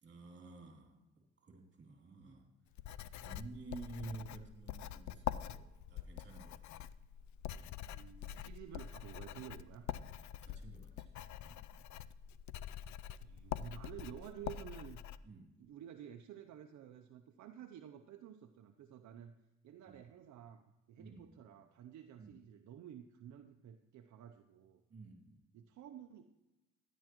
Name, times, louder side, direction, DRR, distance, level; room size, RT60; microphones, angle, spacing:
voice 1, 0.0-2.4 3.1-6.6 7.6-7.8 10.4-11.1 11.4-11.7 13.6-13.7 15.2-15.5 19.9-20.0 21.0-21.3 22.2-22.3 24.9-25.4, right 3 dB, 40° right, 2 dB, 2.7 m, -51 dB
Writing, 2.7-15.2, left 11 dB, 70° left, 0.5 m, -45 dB
voice 2, 7.9-9.9 13.2-15.0 15.6-19.3 19.6-24.8 25.5-26.2, right 10 dB, 70° right, 6 dB, 0.7 m, -52 dB
12.5 x 9.9 x 3.0 m, 0.99 s
cardioid pair, 90°, 30 cm